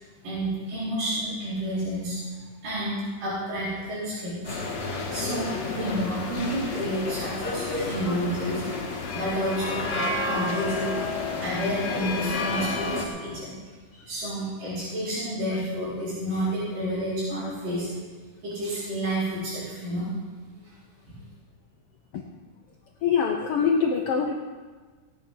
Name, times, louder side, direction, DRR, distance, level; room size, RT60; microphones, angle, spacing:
voice 1, 0.2-2.2 2.6-4.8 5.1-8.8 9.1-11.1 11.4-13.6 14.1-17.9 18.4-20.0 20.6-20.7, right 1 dB, 80° right, -13 dB, 6.1 m, -30 dB
sound 1, 4.4-13.1, left 3 dB, 55° left, 3.0 m, -30 dB
voice 2, 23.0-24.3, left 6 dB, 85° left, 3 dB, 1.2 m, -24 dB
17.5 x 9.0 x 5.6 m, 1.4 s
omnidirectional pair, 3.8 m